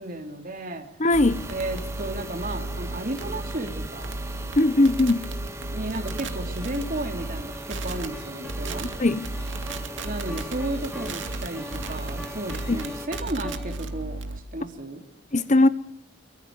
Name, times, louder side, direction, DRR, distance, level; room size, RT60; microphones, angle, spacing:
voice 1, 0.0-0.9 1.5-4.1 5.6-8.9 10.0-15.0, right 1 dB, 45° right, 3.3 m, -33 dB
voice 2, 1.0-1.4 4.6-5.3 9.0-9.3 12.7-12.8 15.3-15.7, left 2 dB, 35° left, 1.0 m, -19 dB
sound 1, 1.1-13.1, right 2 dB, 15° right, 1.9 m, -39 dB
sound 2, 1.1-7.4 7.7-8.1 8.5-9.0 9.2-14.4, right 2 dB, 70° right, 2.3 m, -34 dB
sound 3, 6.6-14.0, left 1 dB, ahead, 1.8 m, -43 dB
26.0 x 24.0 x 4.8 m
head